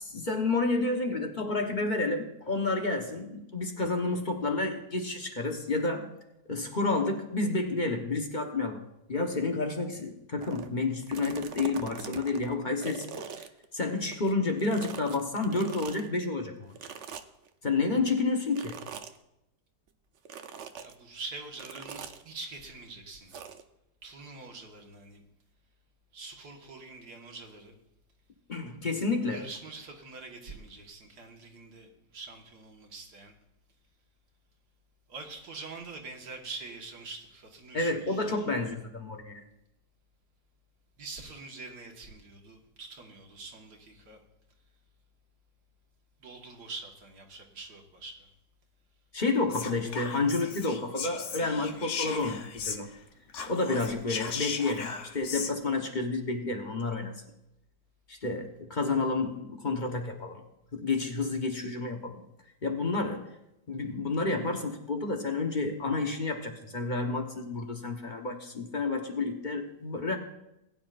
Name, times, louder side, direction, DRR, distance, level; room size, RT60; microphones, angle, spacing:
voice 1, 0.1-6.1 6.5-8.8 9.1-13.0 13.7-16.7 17.6-18.8 28.5-29.4 37.7-39.4 49.1-52.9 53.5-57.1 58.1-60.4 60.7-62.2 62.6-63.3 63.7-70.2, left 3 dB, 30° left, 3 dB, 1.1 m, -30 dB
sound 1, 10.4-10.7 11.0-14.3 14.6-16.1 16.8-17.5 18.5-19.2 20.3-20.9 21.6-22.2 23.3-23.6, right 7 dB, 60° right, 0.8 m, -42 dB
voice 2, 20.8-23.4 24.0-25.2 26.1-27.7 29.3-33.3 35.1-38.7 41.0-44.2 46.2-48.3, right 3 dB, 75° right, 1 dB, 2.2 m, -45 dB
Whispering, 49.5-53.0 53.3-55.5, left 6 dB, 55° left, 1.1 m, -37 dB
20.0 x 9.8 x 2.5 m, 0.86 s
omnidirectional pair, 1.8 m